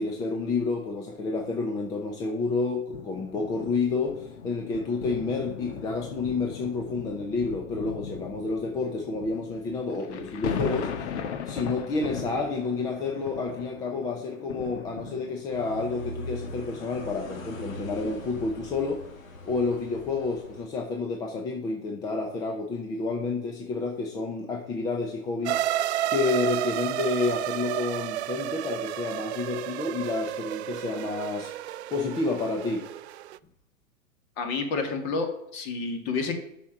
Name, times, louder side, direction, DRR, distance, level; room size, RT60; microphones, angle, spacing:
voice 1, 0.0-11.1 11.4-19.0 19.5-25.6 26.1-31.5 31.9-32.9, left 3 dB, 10° left, 2 dB, 0.6 m, -29 dB
sound 1, 2.9-15.7 16.4-16.5, left 7 dB, 55° left, 1.4 m, -38 dB
Quiet Street Truck Passes By, 15.5-20.7, left 1 dB, 85° left, 2.7 m, -41 dB
sound 2, 25.5-33.4, right 13 dB, 55° right, 0.5 m, -31 dB
voice 2, 34.4-36.3, left 4 dB, 30° left, 5 dB, 2.2 m, -30 dB
8.3 x 6.1 x 6.4 m, 0.80 s
hypercardioid pair, 155°, 40 cm